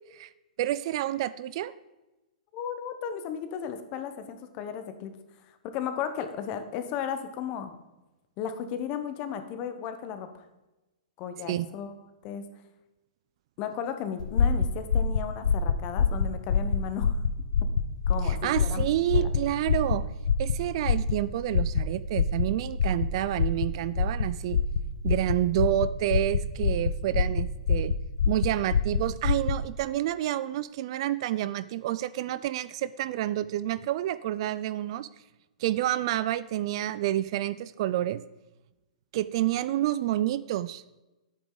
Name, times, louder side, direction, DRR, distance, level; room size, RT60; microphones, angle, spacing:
voice 1, 0.6-1.7 11.5-11.7 18.2-20.1 20.4-24.6 25.0-27.9 28.3-35.1 35.6-38.2 39.1-40.8, right 13 dB, 45° right, 16 dB, 0.3 m, -29 dB
voice 2, 2.5-5.1 5.6-7.7 8.4-10.4 11.2-11.9 12.2-12.5 13.6-17.2 18.1-18.8 19.1-19.3, left 8 dB, 30° left, 9 dB, 0.9 m, -35 dB
sound 1, 14.2-29.6, left 5 dB, 80° left, 0.7 m, -26 dB
10.5 x 8.7 x 3.9 m, 1.1 s
hypercardioid pair, 155°, 4 cm